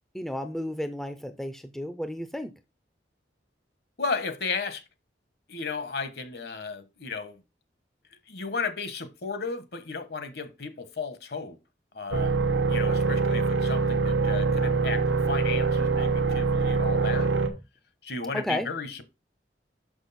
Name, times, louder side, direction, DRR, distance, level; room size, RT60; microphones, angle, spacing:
voice 1, 0.1-2.5 18.3-18.7, left 1 dB, ahead, 0.4 m, -32 dB
voice 2, 4.0-4.8 5.5-7.4 8.3-11.5 11.9-17.3 18.0-19.0, left 4 dB, 60° left, 1.1 m, -34 dB
sound 1, 12.1-17.5, right 4 dB, 85° right, 1.0 m, -24 dB
6.2 x 6.0 x 4.1 m
head